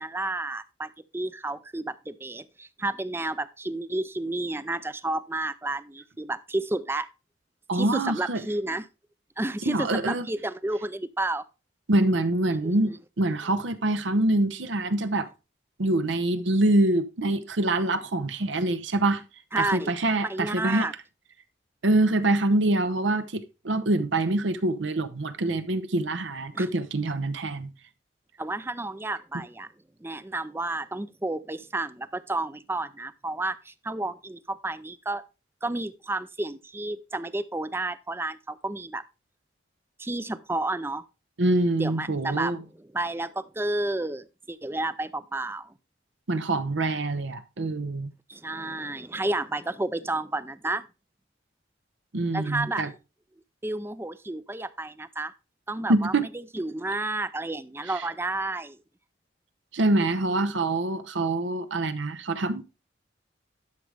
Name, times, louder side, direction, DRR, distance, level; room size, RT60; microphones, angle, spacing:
voice 1, 0.0-7.1 7.7-8.9 9.4-11.4 12.6-13.0 19.5-19.9 20.3-20.9 26.5-26.7 28.4-29.7 30.0-35.2 35.6-39.0 40.0-41.0 41.8-45.7 48.3-50.8 52.3-52.8 53.6-55.3 55.7-56.1 56.5-58.8, right 2 dB, 10° right, 0.4 m, -31 dB
voice 2, 7.7-8.4 9.7-10.2 11.9-15.3 15.8-19.2 19.6-20.9 21.8-27.7 41.4-42.6 46.3-48.1 52.1-52.9 55.9-56.3 59.7-62.6, right 2 dB, 75° right, 0.9 m, -25 dB
11.5 x 6.4 x 3.4 m
head